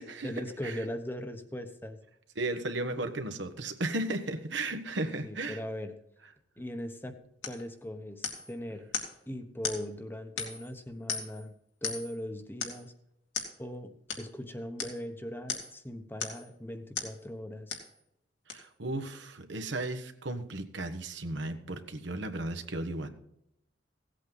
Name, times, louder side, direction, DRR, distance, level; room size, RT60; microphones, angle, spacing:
voice 1, 0.0-2.0 5.2-5.9 6.6-7.2 7.4-8.9 9.3-11.5 11.8-12.9 13.6-17.8, equal, 10° left, 7 dB, 0.9 m, -39 dB
voice 2, 2.4-5.6 18.5-23.1, right 2 dB, 75° right, 7 dB, 1.3 m, -35 dB
sound 1, 7.4-7.6 8.2-8.5 8.9-9.2 9.6-9.8 10.4-10.7 11.1-11.4 11.8-12.2 12.6-12.8 13.3-13.5 14.1-14.3 14.8-15.0 15.5-15.8 16.2-16.5 17.0-17.2 17.7-17.9 18.5-18.6, left 6 dB, 80° left, 2.2 m, -36 dB
16.5 x 8.3 x 4.0 m, 0.79 s
head